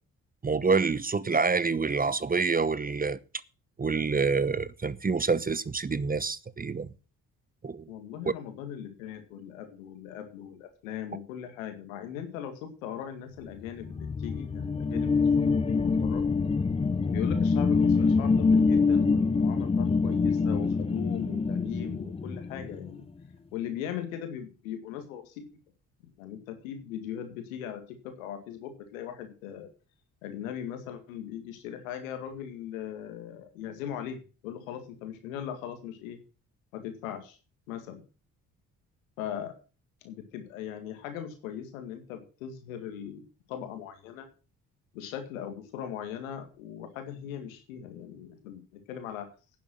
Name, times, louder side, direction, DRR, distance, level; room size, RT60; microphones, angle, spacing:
voice 1, 0.4-3.2 3.8-6.9 7.6-7.8, right 4 dB, 20° right, 0.8 m, -27 dB
voice 2, 7.9-16.3 17.1-23.1 23.5-25.5 26.2-29.7 30.2-36.2 36.7-37.4 37.7-38.0 39.2-39.5 40.0-43.2 43.5-44.3 44.9-49.3, left 9 dB, 85° left, 2.1 m, -39 dB
sound 1, 13.7-22.9, left 4 dB, 15° left, 0.6 m, -25 dB
10.5 x 7.4 x 7.5 m
hypercardioid pair, 45°, 40 cm